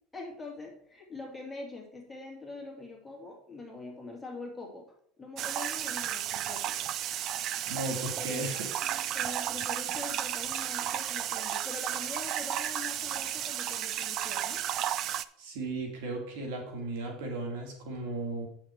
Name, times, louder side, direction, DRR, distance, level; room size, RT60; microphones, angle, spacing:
voice 1, 0.1-6.8 8.2-14.6, left 3 dB, 10° left, -1 dB, 2.5 m, -44 dB
sound 1, 5.4-15.2, right 11 dB, 50° right, 0.4 m, -33 dB
voice 2, 7.7-8.6 8.9-9.0 15.4-18.5, right 2 dB, 85° right, 1 dB, 2.6 m, -36 dB
8.6 x 6.0 x 4.6 m, 0.63 s
supercardioid pair, 130°, 0 cm